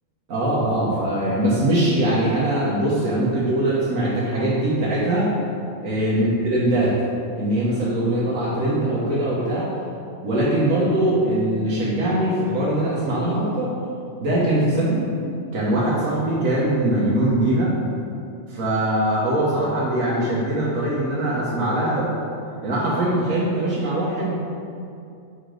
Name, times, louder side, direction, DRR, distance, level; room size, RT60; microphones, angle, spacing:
voice 1, 0.3-5.3 5.8-6.9 7.3-9.7 10.2-13.7 14.2-15.0 15.5-17.7 18.5-22.1 22.6-24.4, right 1 dB, 90° right, -7 dB, 1.4 m, -22 dB
5.8 x 4.9 x 3.8 m, 2.5 s
omnidirectional pair, 1.4 m